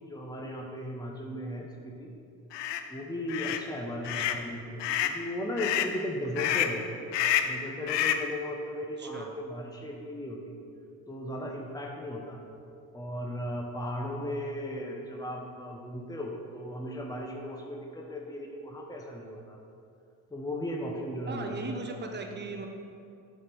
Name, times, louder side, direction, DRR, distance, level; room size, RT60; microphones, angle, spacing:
voice 1, 0.0-2.1 2.9-6.9 7.4-10.5 11.1-12.4 12.9-19.6 20.3-22.2, equal, 10° left, 0 dB, 1.1 m, -36 dB
sound 1, 2.5-2.8 3.3-3.6 4.0-4.4 4.8-5.2 5.6-5.9 6.4-6.8 7.1-7.6 7.9-8.3, left 10 dB, 65° left, 0.6 m, -28 dB
voice 2, 4.0-4.4 9.0-9.3 21.3-22.7, right 3 dB, 25° right, 4 dB, 0.9 m, -38 dB
7.5 x 4.3 x 5.3 m, 2.5 s
supercardioid pair, 60°, 47 cm